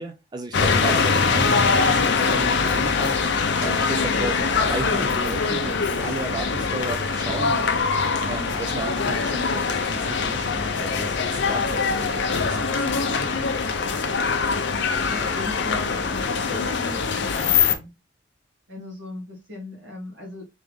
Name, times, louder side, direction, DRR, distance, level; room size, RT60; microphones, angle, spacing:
voice 1, 0.0-13.5, right 3 dB, 20° right, 0.4 m, -34 dB
sound 1, 0.5-17.8, left 5 dB, 60° left, 0.6 m, -23 dB
voice 2, 14.4-17.9 18.7-20.4, left 2 dB, 65° right, 1.8 m, -37 dB
3.6 x 3.3 x 3.5 m
head